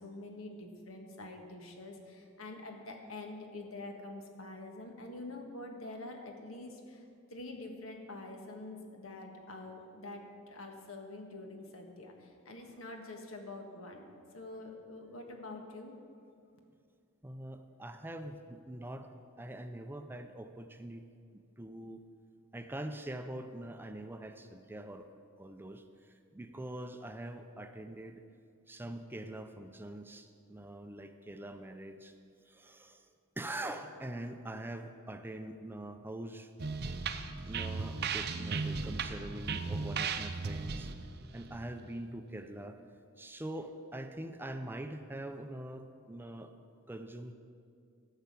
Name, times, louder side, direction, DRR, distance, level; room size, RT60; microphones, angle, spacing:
voice 1, 0.0-14.1 14.3-16.0, left 2 dB, 80° left, 3 dB, 1.6 m, -46 dB
voice 2, 17.2-19.1 19.4-21.0 21.3-22.0 22.5-25.1 25.4-28.2 28.7-32.1 32.5-33.1 33.4-36.5 37.4-40.9 41.3-42.8 43.2-46.5 46.9-47.3, right 1 dB, 10° right, 7 dB, 0.5 m, -44 dB
sound 1, 36.6-42.2, right 4 dB, 50° right, 0.6 m, -37 dB
13.5 x 5.7 x 8.3 m, 2.4 s
head